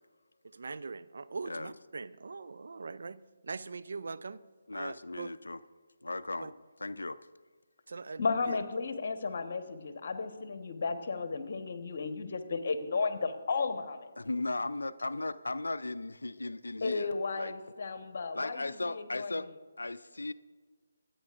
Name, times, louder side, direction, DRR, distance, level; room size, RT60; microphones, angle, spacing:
voice 1, 0.4-4.4 4.7-5.3 6.4-6.5 7.9-8.6, right 4 dB, 60° right, 0.4 m, -41 dB
voice 2, 4.7-5.6 6.0-6.5 6.8-7.2 14.2-17.5 18.3-19.5 19.8-20.3, left 2 dB, 75° left, 0.4 m, -36 dB
voice 3, 8.2-14.1 16.8-19.3, left 4 dB, 50° left, 1.1 m, -34 dB
23.5 x 9.2 x 2.5 m
figure-of-eight pair, 145°, 0 cm